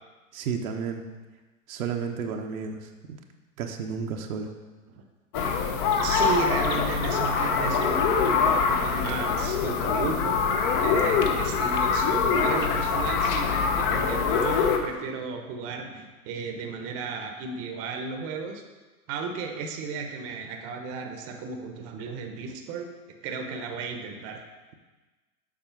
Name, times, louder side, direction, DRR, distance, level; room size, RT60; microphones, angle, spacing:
voice 1, 0.3-1.0 1.7-3.2 3.6-4.5, right 6 dB, 65° right, 3 dB, 1.0 m, -32 dB
sound 1, 5.3-14.8, left 5 dB, 35° left, 0.9 m, -24 dB
voice 2, 6.0-10.4 10.8-18.6 19.1-22.9 23.2-24.4, right 4 dB, 35° right, 3 dB, 0.9 m, -34 dB
7.4 x 4.4 x 5.8 m, 1.2 s
hypercardioid pair, 115°, 45 cm